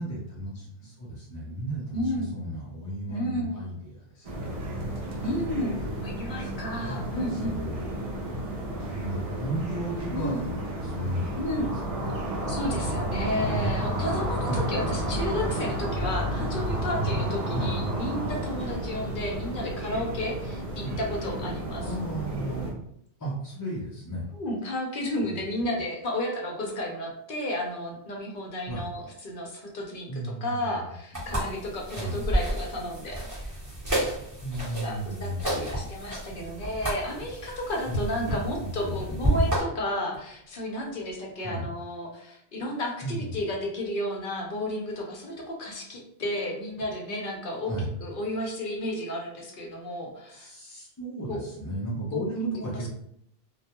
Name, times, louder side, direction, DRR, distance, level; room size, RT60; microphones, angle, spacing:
voice 1, 0.0-5.5 6.4-6.5 6.7-8.0 8.9-11.6 11.9-12.0 14.5-14.7 17.5-17.7 20.8-21.0 21.8-22.7 23.2-24.2 25.2-25.3 28.7-28.9 30.1-30.7 31.1-31.2 31.9-32.2 34.4-35.7 37.9-39.4 41.4-41.7 43.0-43.4 47.7-47.9 50.3-52.9, right 1 dB, 25° left, -7 dB, 0.4 m, -35 dB
voice 2, 1.9-2.3 3.1-3.6 5.2-7.6 10.1-10.4 11.4-11.7 12.5-21.8 24.3-33.5 34.8-47.7 48.0-50.5 51.3-51.4 52.1-52.2 52.6-52.9, left 1 dB, 60° left, -1 dB, 0.7 m, -32 dB
sound 1, 4.2-22.7, right 1 dB, 45° right, 0.5 m, -31 dB
sound 2, 28.9-29.2 30.6-30.8 31.5-31.6 33.8-34.6 35.1-35.3 37.8-41.4 45.3-45.5, left 1 dB, 60° right, 0.9 m, -40 dB
sound 3, 31.1-39.6, right 1 dB, 20° right, 0.9 m, -31 dB
2.2 x 2.1 x 2.8 m, 0.73 s
omnidirectional pair, 1.1 m